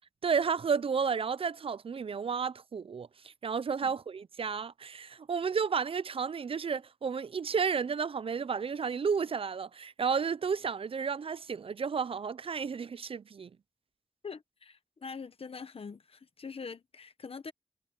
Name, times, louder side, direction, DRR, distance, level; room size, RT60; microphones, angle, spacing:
voice 1, 0.2-13.5, right 6 dB, 70° right, 0.4 m, -32 dB
voice 2, 14.2-17.5, left 5 dB, 75° left, 1.1 m, -44 dB
wide cardioid pair, 75°, 10 cm